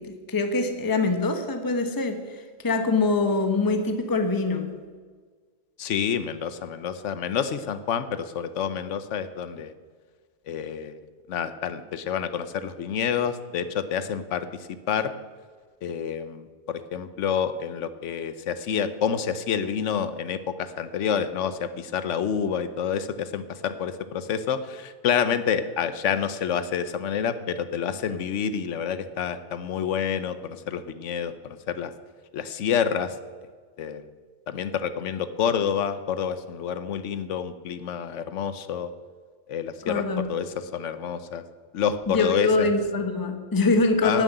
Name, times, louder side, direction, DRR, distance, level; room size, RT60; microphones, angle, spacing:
voice 1, 0.0-4.8 39.8-40.3 42.1-44.2, left 3 dB, 20° left, 7 dB, 1.0 m, -24 dB
voice 2, 5.8-9.7 10.5-10.9 11.3-15.1 15.8-31.9 32.3-33.1 33.8-34.0 34.5-38.9 39.5-41.4 41.7-42.7 44.0-44.2, left 7 dB, 70° left, 12 dB, 1.1 m, -28 dB
11.5 x 7.7 x 9.1 m, 1.5 s
omnidirectional pair, 1.3 m